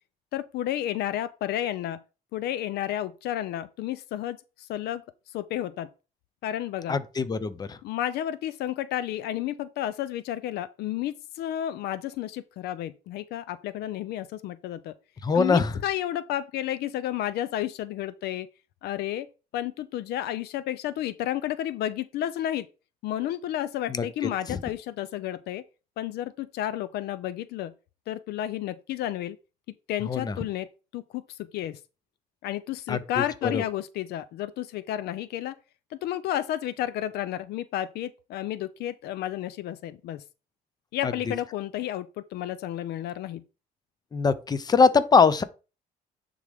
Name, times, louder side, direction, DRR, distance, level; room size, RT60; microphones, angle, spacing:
voice 1, 0.3-2.0 2.3-5.0 5.3-5.9 6.4-7.0 7.8-14.9 15.3-18.5 18.8-19.3 19.5-22.7 23.0-25.6 26.0-27.7 28.1-29.4 29.9-30.7 30.9-31.8 32.4-35.6 35.9-40.2 40.9-43.4, left 12 dB, 75° left, 0.5 m, -31 dB
voice 2, 6.9-7.8 15.2-15.7 23.9-24.0 24.5-24.6 30.1-30.3 32.9-33.6 41.0-41.1 44.1-45.4, left 5 dB, 25° left, 0.7 m, -22 dB
9.5 x 3.7 x 3.5 m
cardioid pair, 110°, 17 cm